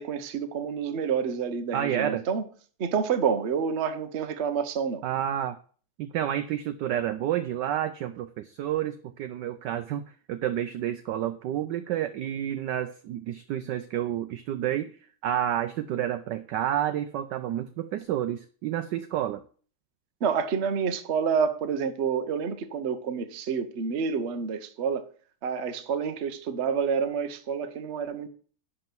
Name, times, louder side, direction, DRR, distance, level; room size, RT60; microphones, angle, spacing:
voice 1, 0.0-2.4 2.8-5.0 20.2-25.0 25.4-28.3, right 6 dB, 55° right, 0.7 m, -28 dB
voice 2, 1.7-2.2 5.0-5.6 6.0-10.0 10.3-15.0 15.2-19.4, right 11 dB, 80° right, 1.0 m, -30 dB
11.0 x 4.2 x 5.9 m
omnidirectional pair, 2.4 m